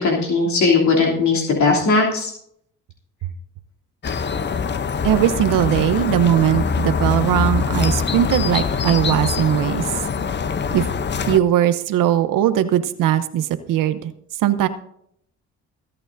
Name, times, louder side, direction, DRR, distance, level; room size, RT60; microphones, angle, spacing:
voice 1, 0.0-2.3, left 4 dB, 60° left, -3 dB, 3.0 m, -18 dB
sound 1, 4.0-11.4, left 5 dB, 35° left, 0.7 m, -23 dB
voice 2, 5.0-9.8 10.7-10.8 11.2-14.0 14.4-14.7, right 11 dB, 75° right, 12 dB, 0.8 m, -19 dB
26.5 x 8.9 x 2.6 m, 0.70 s
supercardioid pair, 70°, 32 cm